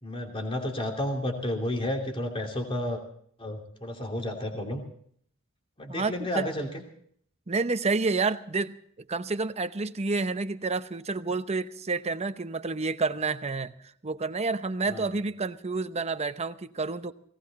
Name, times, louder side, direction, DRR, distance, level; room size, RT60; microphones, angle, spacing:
voice 1, 0.0-3.0 3.4-4.9 5.8-6.8 14.9-15.1, left 1 dB, 25° left, 2 dB, 2.8 m, -31 dB
voice 2, 5.9-6.5 7.5-8.8 9.1-13.7 14.0-17.1, right 3 dB, 30° right, 10 dB, 0.8 m, -29 dB
18.0 x 18.0 x 4.2 m, 0.63 s
head